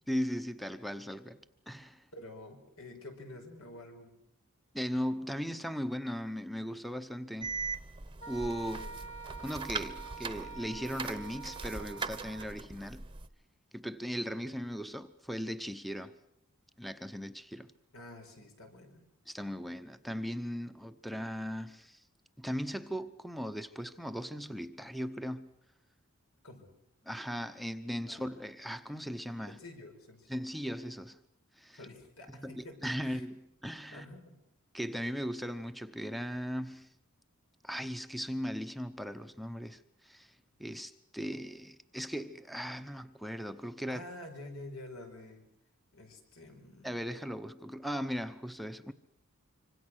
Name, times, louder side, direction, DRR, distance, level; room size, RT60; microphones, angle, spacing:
voice 1, 0.1-2.0 4.7-7.5 8.3-8.9 9.4-13.1 13.7-16.1 16.8-17.7 19.3-22.0 22.4-25.5 27.0-29.6 30.3-31.2 31.6-31.8 32.3-34.1 34.7-36.9 37.6-44.0 46.8-48.9, equal, ahead, 0.9 m, -38 dB
voice 2, 2.1-4.1 8.8-9.0 17.9-19.0 26.4-26.7 28.1-28.2 29.5-30.4 31.7-33.3 33.9-34.3 43.9-45.5 45.9-47.0, left 1 dB, 80° left, 5.5 m, -49 dB
sound 1, 7.4-13.3, right 4 dB, 25° right, 1.0 m, -41 dB
Wind instrument woodwind instrument, 8.2-12.6, right 5 dB, 30° left, 1.4 m, -46 dB
26.0 x 25.5 x 6.4 m
head